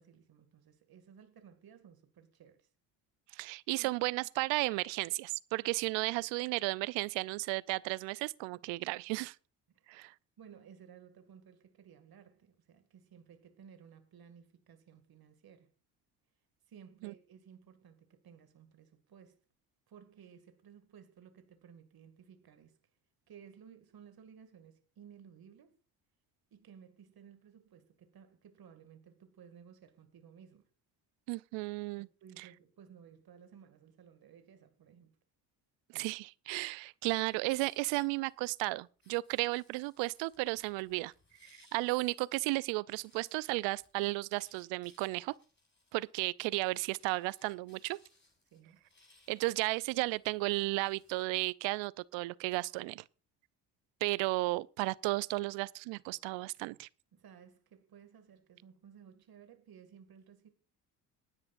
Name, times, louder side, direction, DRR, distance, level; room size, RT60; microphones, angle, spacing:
voice 1, 0.0-2.7 3.7-4.0 9.7-9.9 10.4-15.7 16.7-19.4 19.9-22.8 23.3-25.8 26.5-30.7 32.0-35.1 48.5-48.8 57.1-60.5, right 8 dB, 50° right, 2.3 m, -57 dB
voice 2, 3.3-9.3 9.9-10.1 17.0-17.1 31.3-32.1 32.4-32.5 35.9-41.1 41.7-45.3 45.9-48.0 49.3-53.0 54.0-56.9, right 22 dB, 70° right, 0.6 m, -34 dB
sound 1, 37.0-38.4 39.0-42.6 42.9-51.2, left 2 dB, 25° left, 7.4 m, -67 dB
27.0 x 9.8 x 2.5 m
hypercardioid pair, 55°, 47 cm